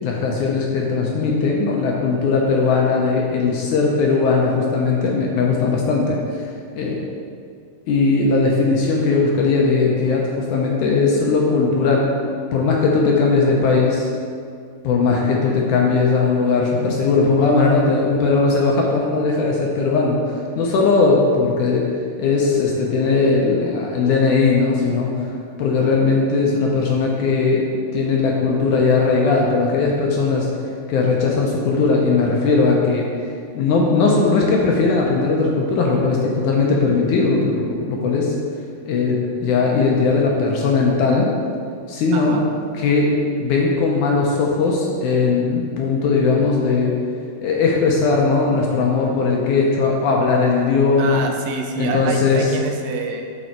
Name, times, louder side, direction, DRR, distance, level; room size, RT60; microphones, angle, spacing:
voice 1, 0.0-6.4 6.8-7.0 7.9-12.1 12.5-14.1 14.8-21.9 22.2-25.1 25.6-30.5 30.9-33.1 33.6-38.4 38.9-41.3 41.9-42.4 42.8-43.1 43.4-47.0 47.4-51.2 51.8-52.5, left 4 dB, 75° left, -1 dB, 2.0 m, -18 dB
voice 2, 42.1-42.5 51.0-53.2, right 5 dB, 85° right, 3 dB, 2.5 m, -27 dB
6.8 x 6.3 x 4.5 m, 2.3 s
omnidirectional pair, 4.1 m